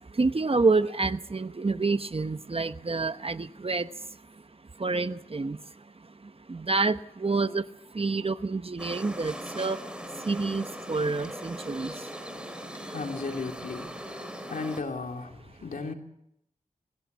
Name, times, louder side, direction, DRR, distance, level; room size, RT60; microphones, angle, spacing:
voice 1, 0.2-3.9 4.8-5.6 6.5-7.7 7.9-9.8 10.3-11.9, right 3 dB, 45° right, 1.0 m, -28 dB
sound 1, 8.8-14.8, equal, 5° right, 4.2 m, -40 dB
voice 2, 12.2-15.9, left 4 dB, 80° left, 2.9 m, -36 dB
21.0 x 16.5 x 8.2 m
cardioid pair, 45°, 14 cm